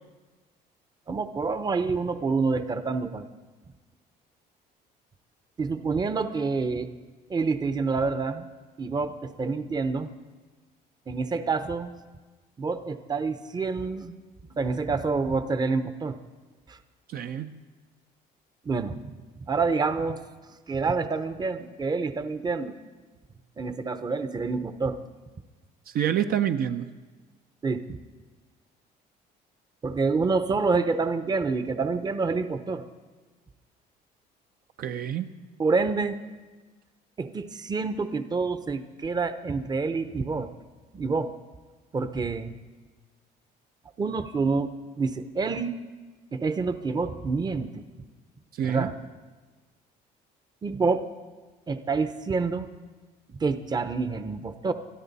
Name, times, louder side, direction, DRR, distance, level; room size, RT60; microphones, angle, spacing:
voice 1, 1.1-3.3 5.6-6.9 7.3-8.5 8.8-10.1 11.1-11.9 12.6-14.1 14.6-16.2 16.7-16.8 18.6-19.0 19.4-20.2 20.7-22.7 23.6-25.0 27.6-28.0 29.8-32.8 35.6-36.2 37.2-40.5 40.9-41.3 41.9-42.6 44.0-44.7 45.0-45.8 46.3-47.8 48.6-48.9 50.6-51.0 51.7-52.7 53.4-54.7, right 4 dB, 25° right, 10 dB, 0.7 m, -27 dB
voice 2, 17.1-17.6 25.9-26.9 34.8-35.3 48.6-48.9, right 9 dB, 60° right, 7 dB, 0.7 m, -27 dB
23.0 x 12.5 x 4.1 m, 1.3 s
cardioid pair, 110°, 17 cm